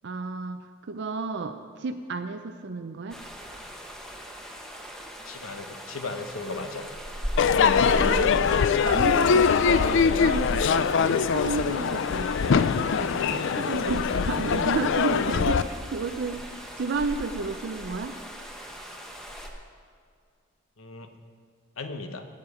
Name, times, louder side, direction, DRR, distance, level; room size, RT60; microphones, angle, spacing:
voice 1, 0.0-3.2 7.7-8.4 8.8-18.2, right 4 dB, 60° right, 7 dB, 0.5 m, -32 dB
sound 1, 3.1-19.5, equal, 5° left, 1.0 m, -39 dB
voice 2, 5.3-6.9 20.8-21.1 21.8-22.3, left 3 dB, 75° left, 7 dB, 1.0 m, -36 dB
Crowd / Fireworks, 7.4-15.6, left 6 dB, 60° left, 0.4 m, -22 dB
16.5 x 7.3 x 4.9 m, 2.2 s
head